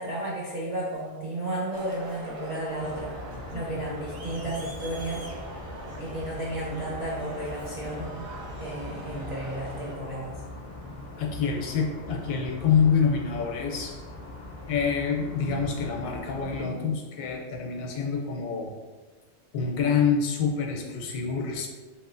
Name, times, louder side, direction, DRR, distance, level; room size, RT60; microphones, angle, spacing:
voice 1, 0.0-3.1 3.5-5.2 6.0-8.1 8.6-10.3, right 1 dB, 55° right, -7 dB, 0.4 m, -33 dB
Crowd, 1.7-9.9, right 2 dB, 85° right, 1.1 m, -42 dB
sound 1, 2.8-16.7, left 2 dB, 55° left, 0.6 m, -41 dB
voice 2, 11.2-14.0 14.6-18.7 19.5-21.7, left 6 dB, 85° left, 1 dB, 1.0 m, -26 dB
3.0 x 2.9 x 2.4 m, 1.3 s
omnidirectional pair, 1.4 m